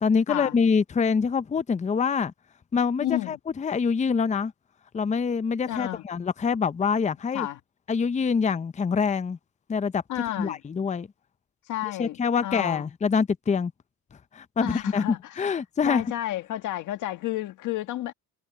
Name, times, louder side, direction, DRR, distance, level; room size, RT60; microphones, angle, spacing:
voice 1, 0.0-2.3 2.7-4.5 4.9-7.5 7.9-9.4 9.7-10.0 10.4-11.1 12.0-13.7 14.3-16.0, left 5 dB, 25° left, 0.6 m, -25 dB
voice 2, 3.0-3.4 5.7-6.0 7.3-7.6 10.1-10.6 11.7-12.9 14.6-15.5 15.8-18.1, left 14 dB, 85° left, 1.8 m, -31 dB
cardioid pair, 90°, 30 cm